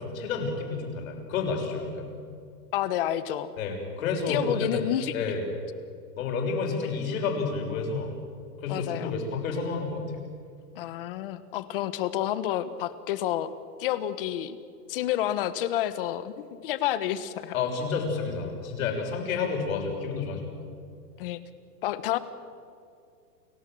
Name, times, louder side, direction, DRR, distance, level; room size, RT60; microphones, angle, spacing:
voice 1, 0.0-2.1 3.6-4.8 5.1-5.4 6.2-8.1 8.6-10.0 17.5-20.6, left 4 dB, 55° left, 1 dB, 6.5 m, -30 dB
voice 2, 2.7-3.5 4.3-5.2 8.7-9.1 10.8-13.5 13.8-14.6 14.9-17.5 21.2-21.4 21.8-22.2, left 12 dB, 35° left, 13 dB, 1.2 m, -29 dB
30.0 x 17.5 x 7.8 m, 2.3 s
supercardioid pair, 170°, 48 cm